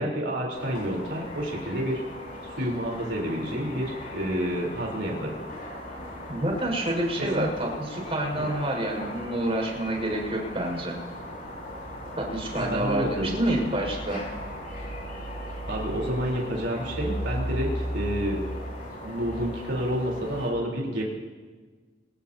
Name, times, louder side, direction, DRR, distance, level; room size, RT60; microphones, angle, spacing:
voice 1, 0.0-2.0 2.4-5.3 7.4-7.5 8.4-8.5 12.6-13.7 15.7-18.4 19.0-21.0, equal, 70° right, -2 dB, 3.8 m, -29 dB
sound 1, 0.5-20.5, equal, 55° left, 6.7 m, -37 dB
voice 2, 6.3-10.9 12.2-14.2, right 1 dB, 35° right, 0 dB, 5.3 m, -28 dB
24.5 x 18.0 x 2.8 m, 1.4 s
head